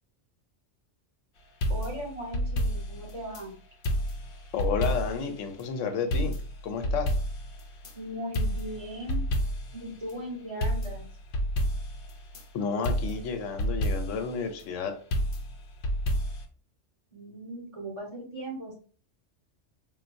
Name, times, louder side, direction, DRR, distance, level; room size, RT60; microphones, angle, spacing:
sound 1, 1.6-3.4 3.8-5.3 5.6-5.7 6.1-7.9 8.3-9.8 10.1-10.2 10.6-12.4 12.8-14.3 15.1-16.5, equal, 60° left, 0.7 m, -30 dB
voice 1, 1.7-3.5 7.9-9.3 9.7-11.1 17.1-18.7, equal, 30° right, -3 dB, 1.4 m, -38 dB
voice 2, 4.5-6.3 6.6-7.2 12.5-14.9, left 5 dB, 90° left, 7 dB, 1.0 m, -31 dB
3.8 x 2.3 x 2.5 m, 0.41 s
omnidirectional pair, 1.3 m